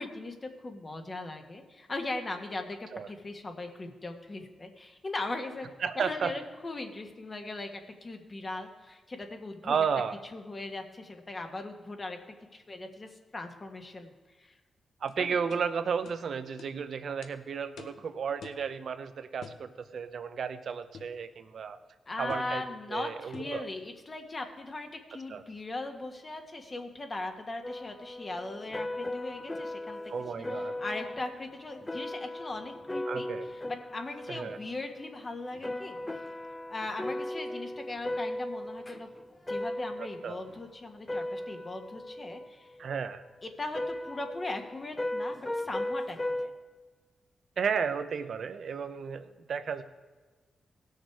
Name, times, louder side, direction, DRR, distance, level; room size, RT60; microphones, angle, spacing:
voice 1, 0.0-5.7 6.0-9.7 10.3-12.2 12.5-14.1 14.4-14.5 15.2-15.4 22.1-30.1 30.8-33.3 33.9-36.0 36.7-39.1 39.5-42.7 43.4-46.5, left 2 dB, 35° left, 4 dB, 1.6 m, -39 dB
voice 2, 5.8-6.3 9.6-10.2 15.0-21.8 22.2-22.6 22.9-23.7 25.3-25.4 30.1-30.8 33.1-33.5 34.3-34.6 40.0-40.4 42.8-43.2 47.6-49.8, right 6 dB, 70° right, 11 dB, 0.8 m, -33 dB
sound 1, 15.1-15.2 15.5-15.6 16.0-16.2 16.6-16.7 17.2-17.3 17.8-18.0 18.4-18.7 19.4-19.6 20.9-21.2 22.3-22.5 23.3-23.6, left 6 dB, 80° left, 0.9 m, -48 dB
sound 2, 27.6-40.6 41.0-43.0 43.7-46.5, left 1 dB, 20° left, 0.7 m, -37 dB
17.5 x 6.5 x 4.7 m, 1.3 s
cardioid pair, 70°, 0 cm